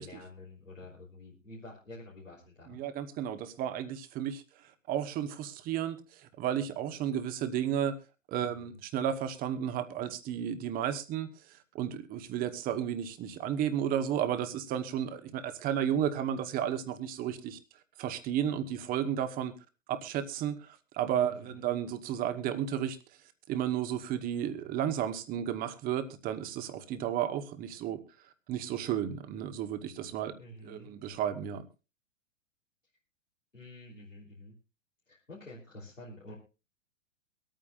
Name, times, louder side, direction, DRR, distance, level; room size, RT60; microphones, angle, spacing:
voice 1, 0.0-2.8 8.5-8.8 21.2-21.6 30.4-30.9 33.5-34.5 35.1-36.3, left 2 dB, 85° left, -6 dB, 3.4 m, -49 dB
voice 2, 2.7-4.4 4.9-8.0 8.3-17.6 18.0-19.5 19.9-23.0 23.5-28.0 28.5-30.4 30.6-31.6, right 9 dB, 25° right, 11 dB, 1.0 m, -33 dB
24.0 x 8.9 x 2.5 m, 0.31 s
figure-of-eight pair, 105°, 38 cm